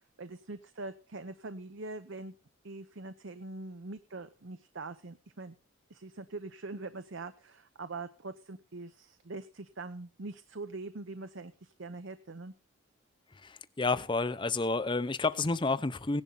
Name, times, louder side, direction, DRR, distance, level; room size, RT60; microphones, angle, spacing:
voice 1, 0.0-2.3 2.6-5.6 5.9-12.5, right 3 dB, 65° right, 0.8 m, -43 dB
voice 2, 13.3-16.2, left 3 dB, 25° left, 0.6 m, -30 dB
17.0 x 11.0 x 4.0 m
head